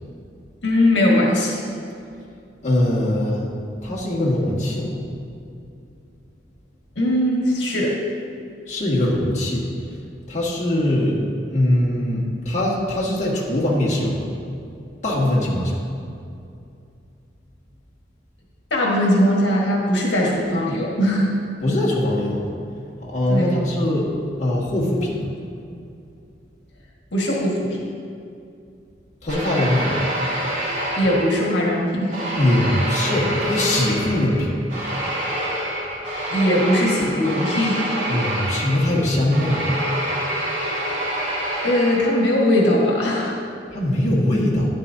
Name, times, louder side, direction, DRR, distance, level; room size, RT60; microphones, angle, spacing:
voice 1, 0.6-1.5 6.9-8.0 18.7-21.3 23.3-23.6 27.1-27.8 30.9-32.1 36.3-37.9 41.6-43.4, left 1 dB, 75° left, -3 dB, 1.6 m, -20 dB
voice 2, 2.6-3.5 3.8-5.0 8.7-9.6 10.3-11.2 11.5-14.3 15.0-15.8 21.6-22.6 23.0-24.1 24.4-25.3 29.2-30.0 32.4-34.5 38.1-39.6 43.7-44.7, left 1 dB, 40° left, -6 dB, 1.7 m, -21 dB
sound 1, 29.3-31.7 32.1-42.4, right 1 dB, 45° right, 2.5 m, -27 dB
12.0 x 10.5 x 2.7 m, 2.5 s
head